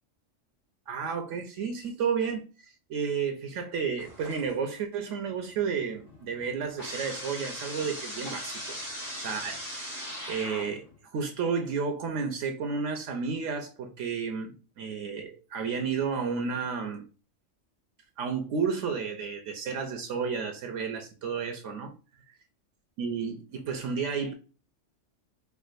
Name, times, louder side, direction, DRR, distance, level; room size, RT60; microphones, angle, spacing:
voice 1, 0.9-8.8 9.2-9.6 10.3-17.0 18.2-21.9 22.3-22.4 23.0-24.3, right 6 dB, 75° right, 0.9 m, -32 dB
sound 1, 4.0-4.8 5.1-11.0, equal, 80° left, 2.3 m, -40 dB
4.5 x 2.4 x 2.4 m
omnidirectional pair, 1.3 m